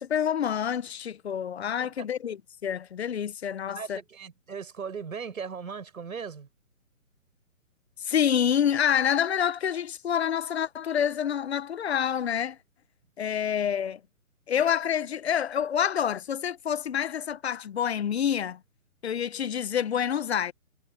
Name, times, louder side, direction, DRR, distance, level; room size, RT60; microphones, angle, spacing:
voice 1, 0.0-4.0 8.0-12.6 13.2-14.0 14.5-18.6 19.0-20.5, left 8 dB, 50° left, 1.1 m, -27 dB
voice 2, 3.7-6.5, right 6 dB, 75° right, 6.8 m, -38 dB
hypercardioid pair, 160°, 42 cm